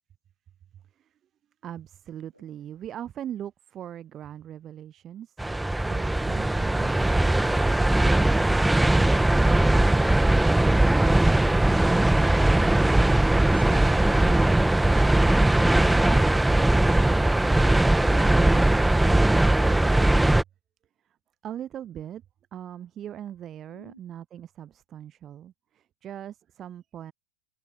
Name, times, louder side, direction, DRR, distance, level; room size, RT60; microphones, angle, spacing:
voice 1, 1.6-12.1 21.0-21.2 21.4-22.2 22.5-27.1, right 10 dB, 30° right, 5.5 m, -41 dB
sound 1, 5.4-20.4, right 1 dB, 5° right, 0.4 m, -20 dB
voice 2, 23.7-24.0, right 1 dB, 90° right, 3.9 m, -50 dB
figure-of-eight pair, 90°, 0 cm